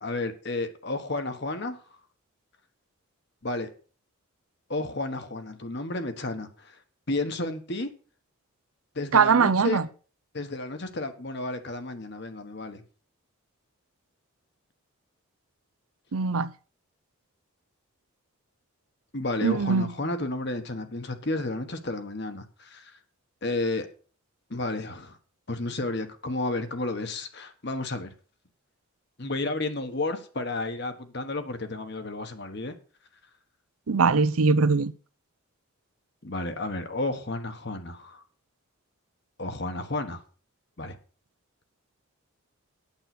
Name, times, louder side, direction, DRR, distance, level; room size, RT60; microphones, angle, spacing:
voice 1, 0.0-1.8 3.4-3.7 4.7-6.8 7.1-7.9 8.9-9.8 10.3-12.8 19.1-22.9 23.4-23.9 24.5-25.2 25.5-28.1 29.2-32.7 36.2-38.2 39.4-40.2 40.8-41.0, left 2 dB, 50° left, 1.3 m, -32 dB
voice 2, 9.1-9.9 16.1-16.5 19.4-19.9 33.9-34.9, right 5 dB, 80° right, 0.6 m, -21 dB
8.9 x 7.9 x 6.0 m
head